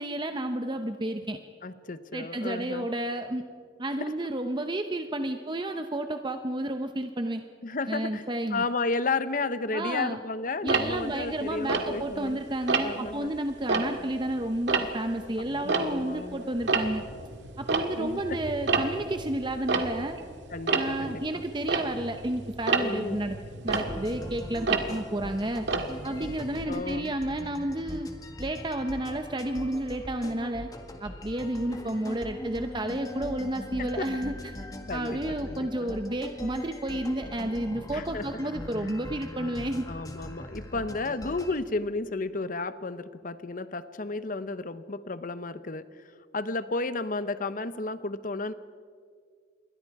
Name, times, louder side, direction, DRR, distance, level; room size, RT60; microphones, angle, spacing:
voice 1, 0.0-1.4 2.1-3.5 3.8-7.4 7.9-8.6 9.7-10.2 10.6-17.0 17.6-20.2 20.7-23.4 23.6-25.7 26.0-28.1 28.4-30.7 31.0-34.3 34.9-39.8, right 1 dB, 25° right, 7 dB, 0.8 m, -31 dB
voice 2, 1.6-2.9 7.6-8.2 8.5-12.4 12.8-13.3 15.6-16.5 18.0-18.4 20.5-21.5 22.8-23.4 26.7-27.1 33.8-34.1 34.9-35.9 37.9-38.3 38.8-39.0 39.9-45.9 46.3-48.5, left 3 dB, 50° left, 13 dB, 0.9 m, -33 dB
Tick-tock, 10.7-12.3 12.7-13.1 13.5-16.3 16.5-26.6, right 4 dB, 80° right, 1.9 m, -30 dB
sound 1, 23.7-41.6, left 1 dB, 20° left, 1.8 m, -41 dB
28.0 x 22.5 x 4.8 m, 2.1 s
head